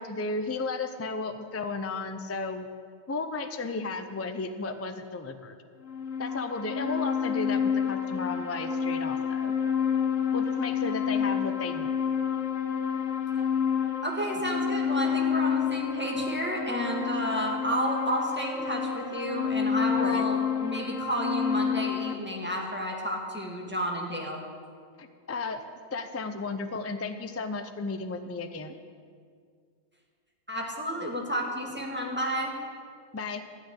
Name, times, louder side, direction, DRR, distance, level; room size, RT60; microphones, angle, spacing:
voice 1, 0.0-2.7 3.1-5.6 6.2-9.5 10.3-11.9 20.0-20.3 25.0-25.6 25.9-28.7 33.1-33.4, left 3 dB, 20° left, 7 dB, 0.4 m, -34 dB
sound 1, 5.8-22.1, left 7 dB, 75° left, 1.5 m, -29 dB
voice 2, 14.0-24.4 30.5-32.5, equal, 10° right, -1 dB, 1.7 m, -31 dB
12.5 x 6.5 x 9.8 m, 2.1 s
omnidirectional pair, 1.3 m